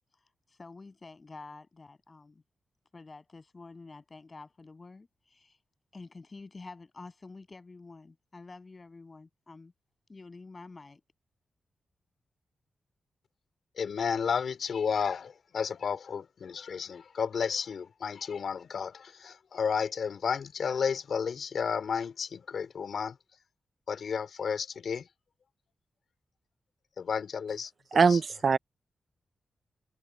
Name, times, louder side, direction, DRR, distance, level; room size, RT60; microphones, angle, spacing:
voice 1, 0.5-2.4 2.9-5.6 5.9-9.7 10.1-11.0, left 3 dB, 30° left, 7.6 m, -48 dB
voice 2, 13.8-23.2 23.9-25.1 27.0-27.7 28.1-28.2, left 6 dB, 65° left, 2.9 m, -32 dB
voice 3, 27.9-28.6, right 5 dB, 50° right, 0.7 m, -22 dB
wide cardioid pair, 110°, 0 cm